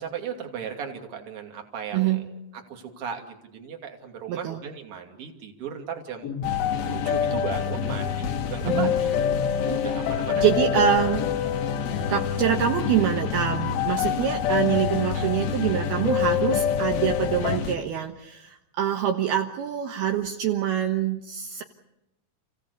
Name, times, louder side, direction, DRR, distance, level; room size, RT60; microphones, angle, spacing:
voice 1, 0.0-6.3 6.9-9.1 9.6-10.5 10.9-11.2 15.1-15.3, right 7 dB, 35° right, 3 dB, 3.1 m, -36 dB
voice 2, 1.9-2.3 4.3-4.6 8.6-8.9 10.4-11.3 12.1-21.6, right 10 dB, 70° right, 3 dB, 2.9 m, -25 dB
sound 1, 6.2-17.8, left 5 dB, 55° left, 1.9 m, -32 dB
sound 2, 6.4-17.6, left 9 dB, 75° left, 3.0 m, -27 dB
29.0 x 17.0 x 8.3 m, 0.93 s
omnidirectional pair, 5.2 m